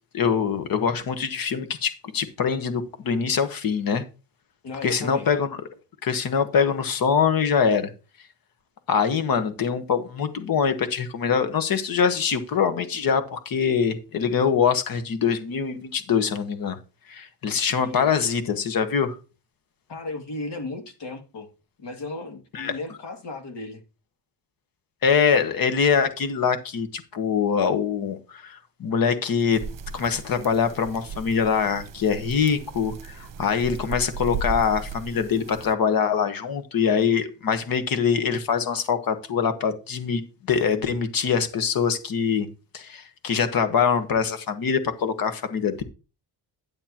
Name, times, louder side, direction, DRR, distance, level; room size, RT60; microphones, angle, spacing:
voice 1, 0.1-4.0 4.8-5.6 6.0-7.9 8.9-16.8 17.1-19.2 22.5-22.7 25.0-29.6 29.9-40.2 40.5-42.5 42.7-45.8, left 6 dB, 55° left, 1.4 m, -24 dB
voice 2, 4.6-5.3 17.8-18.1 19.9-21.5 21.8-23.8, left 2 dB, 80° left, 2.6 m, -35 dB
sound 1, 29.5-35.7, right 4 dB, 50° right, 0.9 m, -36 dB
11.0 x 8.7 x 3.0 m
wide cardioid pair, 180°, 42 cm